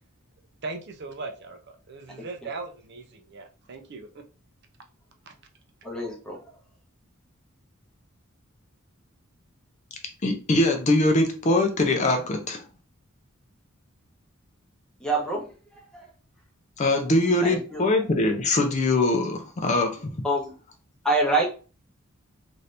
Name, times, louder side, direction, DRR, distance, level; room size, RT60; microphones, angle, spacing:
voice 1, 0.6-4.2 5.3-5.4, right 3 dB, 50° right, 5 dB, 0.5 m, -39 dB
voice 2, 5.8-6.4 15.0-15.5 15.9-16.1 17.4-17.8 20.2-20.5 21.0-21.4, right 2 dB, 5° left, -2 dB, 0.8 m, -26 dB
voice 3, 10.2-12.6 16.8-20.1, left 2 dB, 35° left, 5 dB, 0.4 m, -22 dB
2.8 x 2.6 x 3.2 m, 0.35 s
head